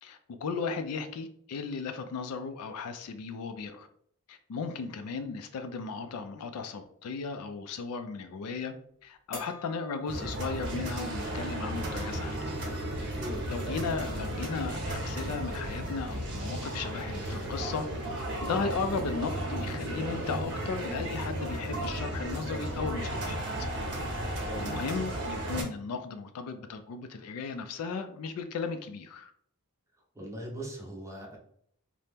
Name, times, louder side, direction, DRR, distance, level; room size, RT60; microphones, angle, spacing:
voice 1, 0.0-3.9 4.3-8.7 9.0-12.4 13.5-17.9 18.4-23.4 24.2-29.3, left 4 dB, 75° left, 8 dB, 0.4 m, -36 dB
sound 1, 9.3-10.9 11.3-11.4 13.0-13.1 13.4-14.0, left 1 dB, 15° left, 0.9 m, -47 dB
sound 2, 10.1-25.6, right 1 dB, 55° right, 0.7 m, -34 dB
voice 2, 24.4-24.7 30.1-31.4, equal, 15° right, -1 dB, 0.7 m, -40 dB
2.8 x 2.0 x 3.4 m, 0.65 s
head